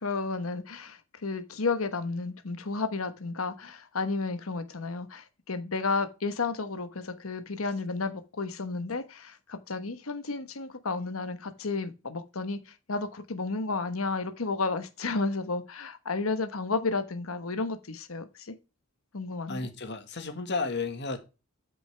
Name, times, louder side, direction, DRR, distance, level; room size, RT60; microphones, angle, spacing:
voice 1, 0.0-12.6 12.9-18.5 19.1-19.6, left 3 dB, 85° left, 1.2 m, -32 dB
voice 2, 19.5-21.2, left 3 dB, 55° left, 1.6 m, -32 dB
8.6 x 6.1 x 3.3 m
head